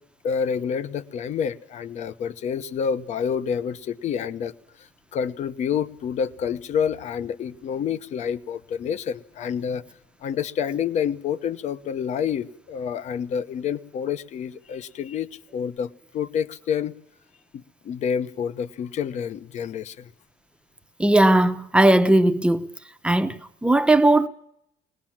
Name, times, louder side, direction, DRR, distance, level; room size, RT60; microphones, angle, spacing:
voice 1, 0.2-4.5 5.1-9.8 10.2-15.3 15.5-16.9 17.5-20.1, left 7 dB, 40° left, 1.0 m, -28 dB
voice 2, 21.0-22.7 23.0-24.3, right 1 dB, 5° right, 0.9 m, -18 dB
22.5 x 20.0 x 7.4 m
cardioid pair, 170°, 18 cm